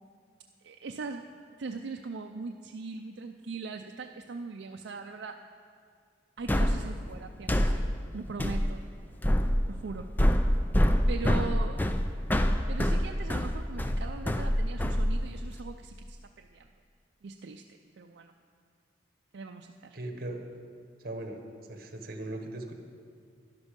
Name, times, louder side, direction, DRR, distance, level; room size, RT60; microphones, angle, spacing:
voice 1, 0.6-5.4 6.4-7.9 8.1-8.8 9.7-10.1 11.1-11.9 12.7-16.7 17.2-17.6 18.0-18.3 19.3-20.0, right 4 dB, 75° right, 4 dB, 0.5 m, -40 dB
sound 1, 6.5-15.6, equal, 10° left, 0.4 m, -27 dB
voice 2, 19.9-20.4 21.0-21.4 21.7-22.7, right 1 dB, 55° right, 4 dB, 1.3 m, -38 dB
12.5 x 11.5 x 5.2 m, 2.2 s
head